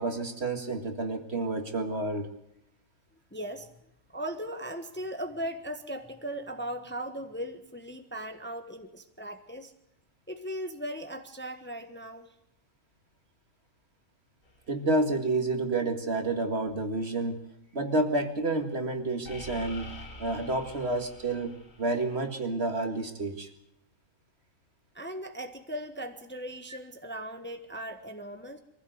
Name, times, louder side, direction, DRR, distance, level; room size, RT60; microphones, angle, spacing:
voice 1, 0.0-2.3 14.7-17.4 17.7-19.9 20.2-23.5, right 2 dB, 50° right, 5 dB, 2.2 m, -29 dB
voice 2, 3.3-3.7 4.1-9.7 10.3-12.3 24.9-28.6, right 1 dB, 10° left, 6 dB, 1.2 m, -38 dB
sound 1, 14.4-14.7 19.3-22.2, left 1 dB, 75° left, 3.1 m, -46 dB
23.5 x 15.5 x 7.9 m, 0.81 s
omnidirectional pair, 1.4 m